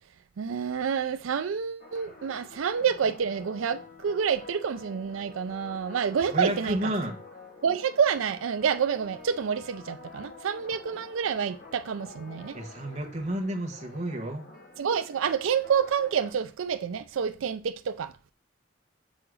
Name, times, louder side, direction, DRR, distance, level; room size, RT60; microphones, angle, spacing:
voice 1, 0.4-6.9 7.6-12.6 14.8-18.1, right 7 dB, 85° right, 0.4 m, -28 dB
sound 1, 1.8-16.3, left 3 dB, 40° left, 1.8 m, -48 dB
voice 2, 6.3-7.2 12.5-14.5, right 1 dB, 35° right, 1.2 m, -31 dB
6.3 x 3.8 x 6.2 m
head